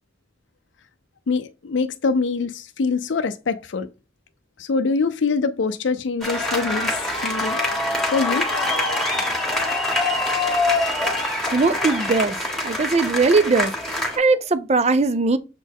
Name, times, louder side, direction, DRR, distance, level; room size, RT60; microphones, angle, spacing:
voice 1, 1.3-3.9 4.6-7.6 8.1-8.5, left 4 dB, 80° left, 0.5 m, -24 dB
sound 1, 6.2-14.2, left 2 dB, ahead, 1.7 m, -24 dB
voice 2, 11.5-12.4 12.6-15.4, right 3 dB, 35° right, 0.5 m, -20 dB
7.1 x 4.2 x 3.6 m
head